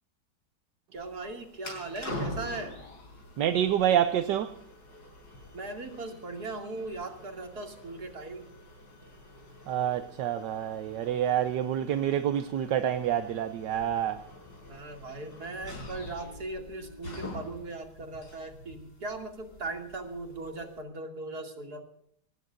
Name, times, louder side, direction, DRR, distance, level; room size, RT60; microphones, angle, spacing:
sound 1, 0.9-20.8, left 1 dB, 65° left, 5.6 m, -45 dB
voice 1, 0.9-2.8 5.5-8.5 14.7-21.8, right 2 dB, 50° right, 3.0 m, -39 dB
voice 2, 3.4-4.5 9.7-14.2, right 10 dB, 70° right, 1.3 m, -27 dB
25.0 x 18.5 x 2.5 m
omnidirectional pair, 2.1 m